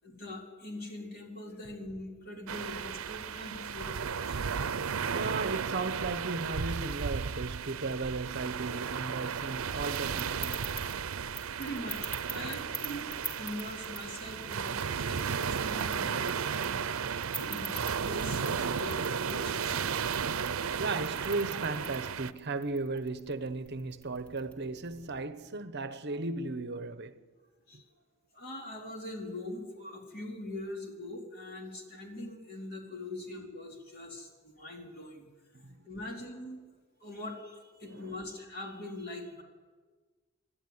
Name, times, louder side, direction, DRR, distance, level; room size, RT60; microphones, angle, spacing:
voice 1, 0.0-4.4 11.6-17.1 17.4-20.0 27.7-27.8 28.3-35.3 35.8-36.6 37.0-39.4, left 1 dB, 45° left, 4.3 m, -42 dB
sound 1, 2.5-22.3, right 6 dB, 85° right, 0.6 m, -34 dB
voice 2, 5.1-10.6 20.8-27.2 35.6-35.8 37.9-38.2, right 3 dB, 55° right, 1.0 m, -36 dB
sound 2, 9.5-25.2, right 1 dB, 5° left, 3.1 m, -46 dB
28.0 x 11.5 x 9.6 m
head